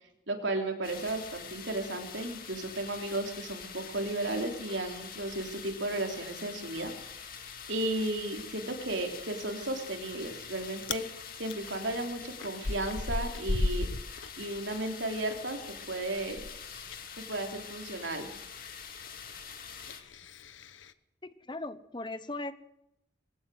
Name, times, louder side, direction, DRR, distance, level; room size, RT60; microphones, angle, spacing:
voice 1, 0.3-6.9 7.7-11.0 11.4-13.9 14.4-15.6 15.9-16.4 17.3-18.3, right 2 dB, 75° right, 4 dB, 3.6 m, -34 dB
sound 1, 0.8-20.0, left 7 dB, 50° left, 2.6 m, -45 dB
Chewing mastication, 10.0-10.5 10.8-11.1 11.5-15.2 15.5-20.9, left 2 dB, 90° left, 1.0 m, -37 dB
voice 2, 21.2-22.5, left 2 dB, 25° left, 13 dB, 0.9 m, -38 dB
21.0 x 16.5 x 7.9 m, 0.81 s
head